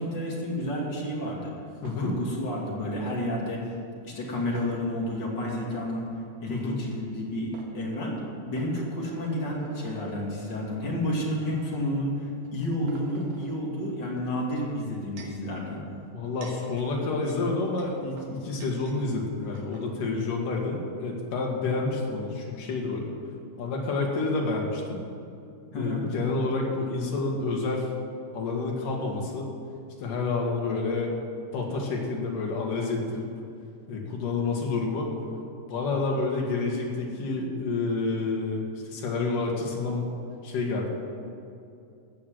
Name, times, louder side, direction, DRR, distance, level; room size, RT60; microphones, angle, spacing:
voice 1, 0.0-1.5 2.0-3.6 4.0-6.1 6.4-12.2 12.5-15.8 25.7-26.0, left 1 dB, 35° left, -3 dB, 2.8 m, -30 dB
voice 2, 1.8-2.1 6.5-6.8 16.1-23.1 23.6-25.0 25.7-27.9 28.3-29.5 30.0-31.1 31.5-33.3 33.9-35.1 35.7-40.1 40.4-40.9, left 3 dB, 80° left, -1 dB, 3.4 m, -29 dB
sound 1, 1.9-2.3 3.1-3.2 4.5-5.2 5.6-5.8 7.1-7.2 7.5-7.7 8.6-10.2 10.9-11.1 11.7-11.9 12.4-13.6 14.7-15.5 16.1-19.0 19.3-19.4 19.5-19.9, right 4 dB, 90° right, 3.1 m, -49 dB
15.5 x 6.5 x 7.7 m, 2.5 s
omnidirectional pair, 3.7 m